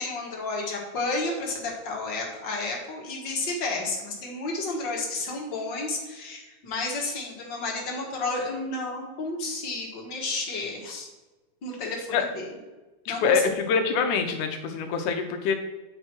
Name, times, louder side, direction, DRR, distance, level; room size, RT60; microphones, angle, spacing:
voice 1, 0.0-11.1 11.6-12.6 13.1-13.4, left 3 dB, 45° left, -1 dB, 1.9 m, -31 dB
voice 2, 13.2-15.6, left 5 dB, 80° left, 6 dB, 2.3 m, -24 dB
9.0 x 5.1 x 4.5 m, 1.2 s
omnidirectional pair, 3.5 m